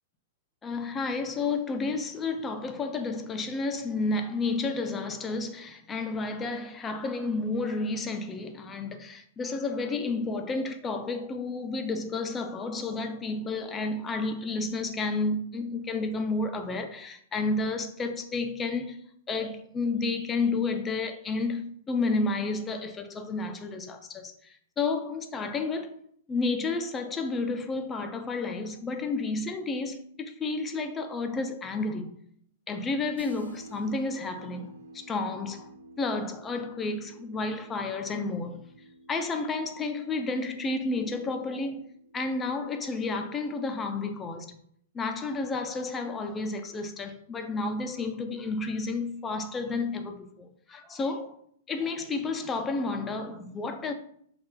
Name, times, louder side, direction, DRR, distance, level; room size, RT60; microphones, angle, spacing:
voice 1, 0.6-19.0 19.3-26.0 26.3-32.1 32.7-35.7 36.0-38.6 39.1-41.9 42.1-44.5 45.0-51.3 51.7-53.9, left 3 dB, 20° left, 0.4 m, -31 dB
sound 1, 33.2-42.8, right 1 dB, 90° right, 0.4 m, -52 dB
2.6 x 2.3 x 3.6 m
hypercardioid pair, 125°, 0 cm